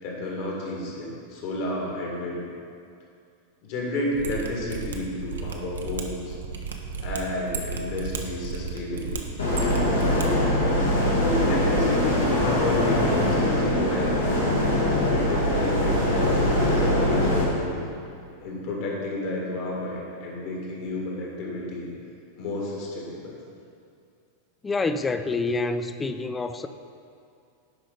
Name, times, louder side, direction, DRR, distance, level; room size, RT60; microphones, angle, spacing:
voice 1, 0.0-2.5 3.6-6.4 7.0-9.2 11.1-14.2 15.1-17.8 18.4-21.9 22.4-23.3, left 1 dB, 50° left, -2 dB, 2.0 m, -31 dB
Mechanisms, 4.1-10.2 10.5-10.6, right 5 dB, 65° right, 0.8 m, -34 dB
sound 1, 9.4-17.4, left 1 dB, 75° left, 1.8 m, -22 dB
voice 2, 24.6-26.7, left 3 dB, 15° left, 9 dB, 0.4 m, -27 dB
11.0 x 5.1 x 4.0 m, 2.4 s
figure-of-eight pair, 90°, 0 cm